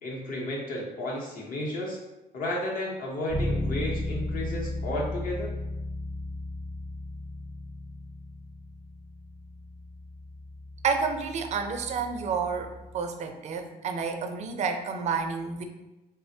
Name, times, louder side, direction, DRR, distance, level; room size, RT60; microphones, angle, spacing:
voice 1, 0.0-2.0 2.3-5.6, left 1 dB, 55° left, -3 dB, 0.8 m, -32 dB
Bass guitar, 3.3-13.1, left 1 dB, 20° left, 0.7 m, -36 dB
voice 2, 10.8-15.6, right 5 dB, 45° right, 6 dB, 0.4 m, -30 dB
3.3 x 2.0 x 2.6 m, 0.99 s
cardioid pair, 110°, 17 cm